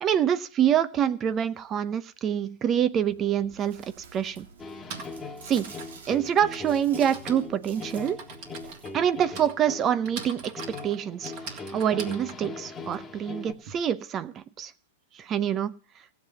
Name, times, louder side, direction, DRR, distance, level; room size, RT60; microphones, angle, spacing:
voice 1, 0.0-3.8 4.1-4.5 5.5-5.7 6.1-8.2 8.9-14.7 15.1-15.7, right 9 dB, 25° right, 15 dB, 0.7 m, -26 dB
Chewing mastication, 3.0-9.3, right 4 dB, 75° right, 2.2 m, -49 dB
Typing, 3.5-3.6 4.6-13.7, right 5 dB, 50° right, 3.2 m, -43 dB
sound 1, 4.6-13.5, left 3 dB, 15° left, 1.7 m, -41 dB
16.0 x 7.4 x 8.1 m, 0.44 s
hypercardioid pair, 120°, 0 cm